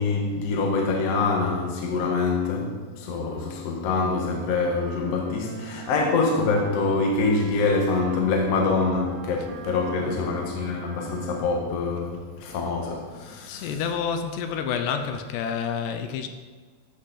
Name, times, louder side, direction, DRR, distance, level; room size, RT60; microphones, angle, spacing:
voice 1, 0.0-13.7, left 3 dB, 60° left, 1.8 m, -25 dB
sound 1, 4.5-11.8, right 7 dB, 75° right, 2.5 m, -41 dB
voice 2, 13.5-16.3, left 7 dB, 80° left, 2.8 m, -29 dB
13.5 x 6.3 x 4.0 m
omnidirectional pair, 4.9 m